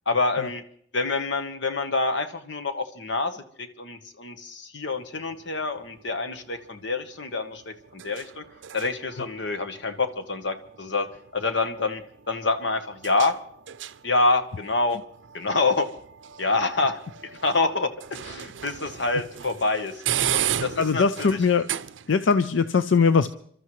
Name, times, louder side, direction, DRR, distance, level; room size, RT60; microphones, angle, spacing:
voice 1, 0.1-0.6 0.9-8.4 8.7-13.4 14.0-15.0 15.3-15.9 16.4-17.0 17.3-19.9 20.3-21.4, left 3 dB, 70° left, 8 dB, 1.2 m, -27 dB
sound 1, 4.9-22.3, right 10 dB, 75° right, 0.5 m, -36 dB
voice 2, 20.8-21.7 22.1-23.3, left 5 dB, 90° left, 11 dB, 0.5 m, -21 dB
28.5 x 13.0 x 3.2 m, 0.62 s
head